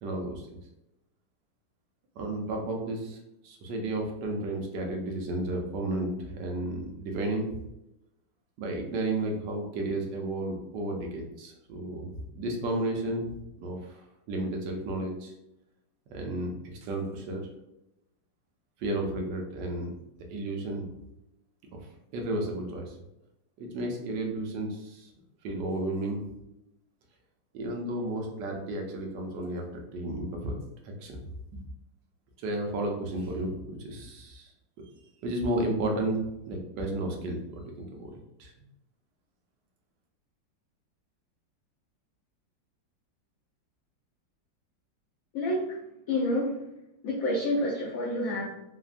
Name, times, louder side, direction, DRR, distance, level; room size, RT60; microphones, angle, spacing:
voice 1, 0.0-0.5 2.2-3.2 3.4-7.5 8.6-13.3 13.6-15.3 16.1-17.4 18.8-20.0 20.3-20.9 21.7-21.9 22.1-23.0 23.6-25.1 25.4-26.2 27.5-30.5 30.8-31.7 32.4-34.5 35.2-38.1 38.4-38.5, right 1 dB, 75° right, 1 dB, 1.1 m, -33 dB
voice 2, 45.3-45.8 46.1-46.6 47.0-48.4, left 1 dB, 85° left, -4 dB, 0.7 m, -28 dB
3.3 x 2.1 x 2.4 m, 0.87 s
omnidirectional pair, 2.0 m